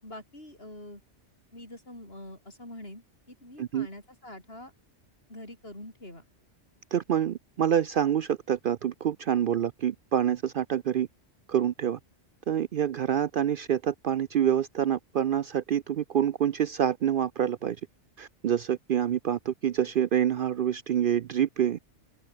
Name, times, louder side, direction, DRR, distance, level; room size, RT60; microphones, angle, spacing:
voice 1, 0.0-1.0 1.5-4.7 5.3-6.2 9.6-9.7, left 1 dB, 60° left, 8.4 m, -45 dB
voice 2, 6.9-11.1 11.5-12.0 12.5-17.8 18.2-21.8, right 9 dB, 60° right, 0.7 m, -27 dB
open air
omnidirectional pair, 1.2 m